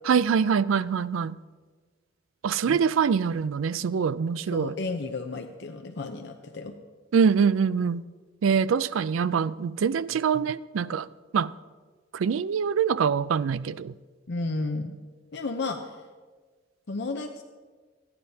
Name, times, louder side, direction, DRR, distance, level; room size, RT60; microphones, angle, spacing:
voice 1, 0.0-1.4 2.4-4.7 7.1-8.0 8.4-11.1 11.3-11.5 12.1-13.9, right 6 dB, 90° right, 0.4 m, -24 dB
voice 2, 4.5-6.7 14.3-14.9 15.3-15.8 16.9-17.4, left 3 dB, 60° left, 0.7 m, -32 dB
26.5 x 9.6 x 2.8 m
head